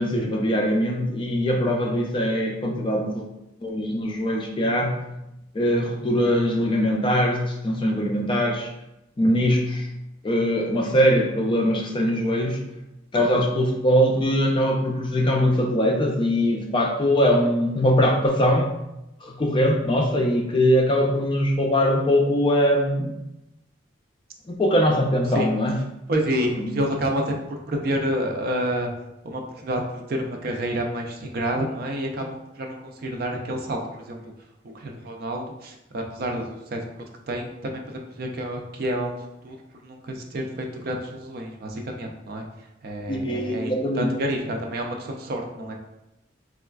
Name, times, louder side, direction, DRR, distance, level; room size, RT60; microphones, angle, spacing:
voice 1, 0.0-3.3 3.6-5.0 5.5-8.7 9.2-9.9 10.2-12.6 13.1-18.8 19.2-23.2 24.5-25.7 26.6-26.7 43.1-44.1, equal, 25° left, 1 dB, 0.4 m, -22 dB
voice 2, 26.1-28.9 29.2-34.2 34.7-39.2 39.4-42.5 42.8-45.7, equal, 50° right, 2 dB, 0.4 m, -29 dB
4.1 x 2.4 x 2.2 m, 0.90 s
head